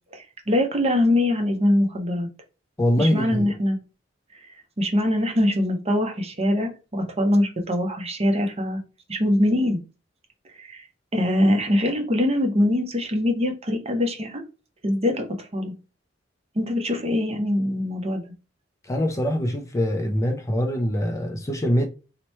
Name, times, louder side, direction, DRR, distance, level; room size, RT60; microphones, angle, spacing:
voice 1, 0.1-2.3 3.0-3.8 4.8-8.8 9.1-9.8 10.6-10.9 11.1-14.4 14.8-15.7 16.5-18.3, left 1 dB, 35° right, 0.8 m, -23 dB
voice 2, 2.8-3.5 18.8-21.9, equal, 15° left, 0.4 m, -23 dB
3.0 x 2.1 x 4.1 m
head